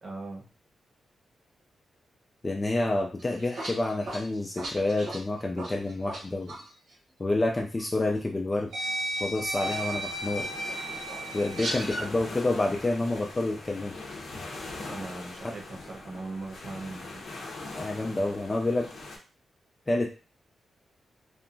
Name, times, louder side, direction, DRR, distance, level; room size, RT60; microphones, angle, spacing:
voice 1, 0.0-0.5 14.9-17.2, right 3 dB, 50° right, -1 dB, 0.8 m, -40 dB
voice 2, 2.4-6.6 7.2-8.7 9.2-10.5 11.3-13.9 17.7-18.9 19.9-20.1, left 2 dB, 20° left, 1 dB, 0.3 m, -28 dB
sound 1, 3.2-6.2 6.5-6.7 7.8-7.9 8.7-12.1, right 1 dB, 85° right, 1.0 m, -34 dB
sound 2, 9.6-19.2, left 2 dB, 70° left, 0.7 m, -42 dB
2.8 x 2.3 x 2.5 m, 0.34 s
wide cardioid pair, 150°, 0 cm